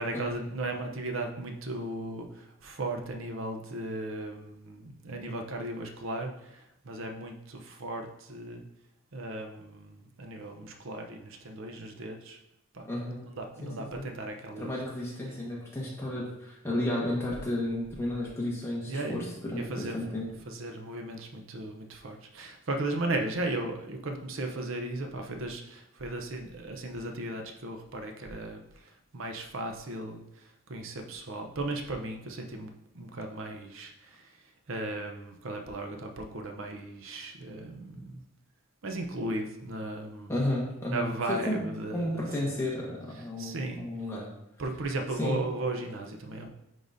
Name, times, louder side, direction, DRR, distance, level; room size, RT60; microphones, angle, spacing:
voice 1, 0.0-8.6 9.1-12.4 12.7-12.9 13.3-14.8 15.3-15.4 18.9-20.0 20.4-34.3 34.7-38.2 38.8-40.4 40.9-42.6 43.2-43.8 44.6-46.5, right 2 dB, 65° right, 3 dB, 0.7 m, -36 dB
voice 2, 12.8-13.2 13.6-14.1 14.6-19.2 19.5-20.3 40.3-44.2 45.2-45.4, left 1 dB, 10° left, -4 dB, 1.3 m, -33 dB
9.9 x 3.9 x 2.6 m, 0.85 s
head